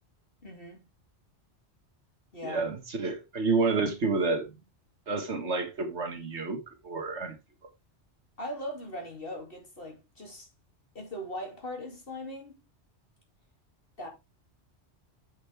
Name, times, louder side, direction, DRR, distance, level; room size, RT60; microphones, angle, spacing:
voice 1, 0.4-0.9 2.3-2.7 8.4-10.5 10.9-12.6 14.0-14.1, left 1 dB, 55° left, 2.8 m, -39 dB
voice 2, 2.4-4.5 5.1-7.4, right 3 dB, 75° right, 1.8 m, -29 dB
7.5 x 6.5 x 3.4 m
omnidirectional pair, 1.2 m